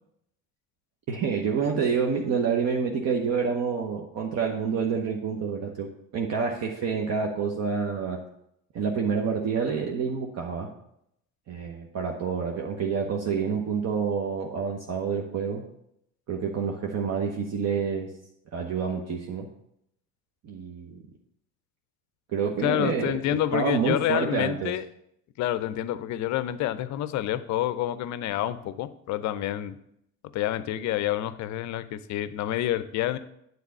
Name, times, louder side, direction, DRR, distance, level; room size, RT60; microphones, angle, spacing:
voice 1, 1.1-8.2 8.7-10.7 11.5-15.6 16.3-18.1 18.5-19.5 20.4-21.0 22.3-23.2 23.5-24.7, right 6 dB, 40° right, 1 dB, 1.0 m, -28 dB
voice 2, 22.6-24.8 25.4-29.8 30.3-33.2, left 12 dB, 45° left, 14 dB, 0.6 m, -28 dB
9.6 x 3.9 x 6.7 m, 0.76 s
figure-of-eight pair, 55°, 42 cm